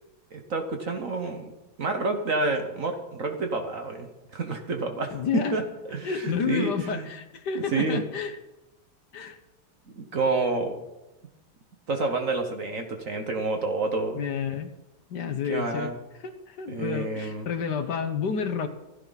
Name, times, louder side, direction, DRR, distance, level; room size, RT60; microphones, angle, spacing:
voice 1, 0.3-1.5 1.8-5.6 5.9-7.1 7.7-8.0 9.9-10.8 11.9-14.2 15.3-16.0 16.7-17.5, right 3 dB, 45° right, 5 dB, 1.4 m, -29 dB
voice 2, 5.1-5.6 6.0-8.4 9.1-9.4 14.1-14.7 15.1-15.9 16.2-18.7, left 6 dB, 60° left, 8 dB, 1.5 m, -30 dB
16.0 x 14.5 x 4.1 m, 1.0 s
omnidirectional pair, 2.3 m